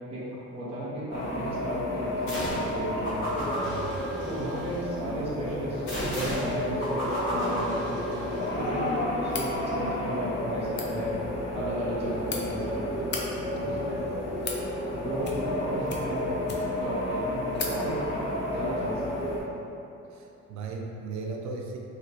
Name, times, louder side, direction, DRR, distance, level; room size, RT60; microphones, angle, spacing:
voice 1, 0.1-3.5 4.2-8.1 8.5-8.9 9.2-11.1 11.5-13.1 13.6-14.1 14.9-16.4 16.8-18.2 18.5-19.4, right 1 dB, 20° right, -9 dB, 0.6 m, -34 dB
sound 1, 1.1-19.4, left 1 dB, 55° left, 1.1 m, -32 dB
sound 2, 2.3-2.7 3.0-4.8 5.9-8.5, equal, 80° left, 1.1 m, -34 dB
voice 2, 3.6-4.1 13.5-14.2 20.1-21.8, right 4 dB, 70° right, 1 dB, 0.5 m, -38 dB
sound 3, 9.3-9.5 10.6-10.9 11.9-12.4 13.0-13.2 14.0-14.6 15.2-15.6 15.9-16.8 17.2-17.3 17.5-17.8, left 5 dB, 40° left, 0.4 m, -36 dB
3.2 x 2.8 x 2.6 m, 2.8 s
cardioid pair, 155°, 29 cm